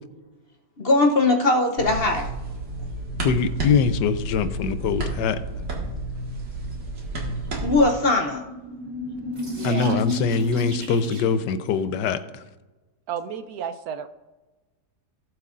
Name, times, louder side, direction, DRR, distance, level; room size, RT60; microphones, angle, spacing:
voice 1, 0.8-2.3 7.6-8.4 9.7-9.9, left 2 dB, 50° left, 3 dB, 0.7 m, -20 dB
sound 1, 1.8-7.8, right 2 dB, 85° right, 2.5 m, -31 dB
voice 2, 3.2-5.4 9.6-12.4, left 6 dB, 80° left, 12 dB, 1.3 m, -23 dB
sound 2, 8.5-11.5, left 1 dB, 25° right, 2.0 m, -31 dB
voice 3, 9.4-10.0 13.1-14.1, right 8 dB, 70° right, 10 dB, 1.0 m, -32 dB
18.0 x 7.6 x 2.5 m, 1.2 s
omnidirectional pair, 1.9 m